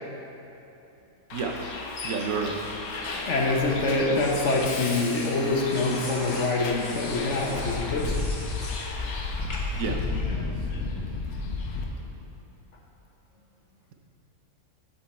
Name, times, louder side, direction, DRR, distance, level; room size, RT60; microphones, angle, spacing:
Bus, 1.3-11.8, left 3 dB, 85° left, 1.3 m, -33 dB
voice 1, 1.3-2.6 9.7-10.0, right 5 dB, 70° right, 3 dB, 1.1 m, -31 dB
sound 1, 2.6-3.6 4.2-5.4 5.7-8.9 9.5-9.9, left 2 dB, 35° left, 1.1 m, -42 dB
voice 2, 3.3-8.2, left 2 dB, 60° left, -1 dB, 1.2 m, -25 dB
12.5 x 4.5 x 4.3 m, 2.9 s
omnidirectional pair, 1.5 m